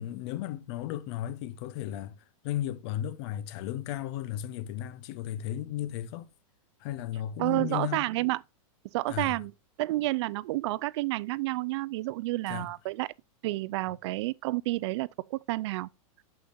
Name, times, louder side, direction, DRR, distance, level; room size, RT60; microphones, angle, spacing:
voice 1, 0.0-6.3 6.8-8.0 9.1-9.4 12.5-12.7, left 12 dB, 50° left, 0.8 m, -35 dB
voice 2, 7.4-8.4 8.9-9.5 9.8-13.1 13.4-15.9, right 19 dB, 50° right, 0.4 m, -30 dB
8.7 x 6.8 x 2.5 m
hypercardioid pair, 140°, 18 cm